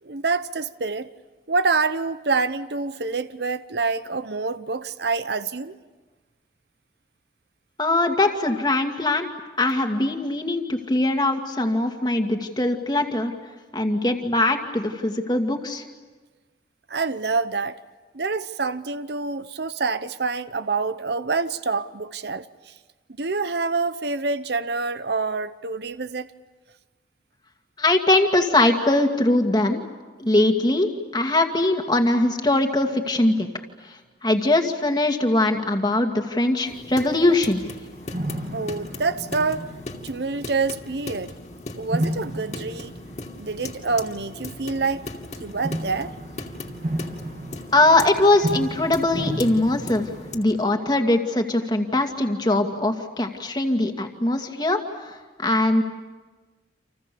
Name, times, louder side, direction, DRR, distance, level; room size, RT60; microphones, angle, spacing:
voice 1, 0.0-1.1 1.5-5.8 16.9-17.8 18.1-22.7 23.2-26.3 38.5-39.7 40.0-41.3 41.7-42.9 43.4-45.0 45.4-46.1, right 4 dB, 70° right, 0.9 m, -26 dB
voice 2, 7.8-9.3 9.6-13.3 13.7-15.8 27.8-29.8 30.2-33.5 33.8-34.0 34.2-37.6 47.7-55.8, left 2 dB, 25° left, 2.1 m, -21 dB
sound 1, 36.6-50.4, left 2 dB, 40° left, 2.6 m, -38 dB
sound 2, 37.3-37.4 38.1-40.9 41.9-44.0 45.6-50.6, right 1 dB, 45° right, 2.1 m, -33 dB
30.0 x 27.5 x 7.0 m
head